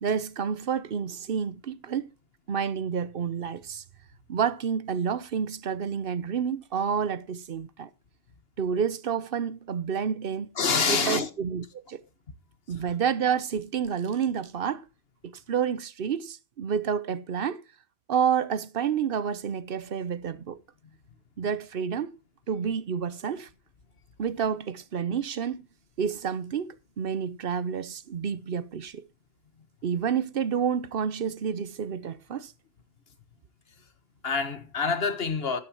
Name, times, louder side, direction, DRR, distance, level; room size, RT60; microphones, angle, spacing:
voice 1, 0.0-2.1 2.5-3.8 4.3-7.9 8.6-10.5 10.9-12.0 12.7-14.8 15.2-17.6 18.1-20.6 21.4-22.2 22.5-23.5 24.2-25.6 26.0-29.0 29.8-32.5, right 7 dB, 60° right, 0.9 m, -29 dB
voice 2, 10.5-11.3 34.2-35.6, left 5 dB, 65° left, 1.6 m, -26 dB
14.0 x 12.5 x 3.0 m
omnidirectional pair, 1.1 m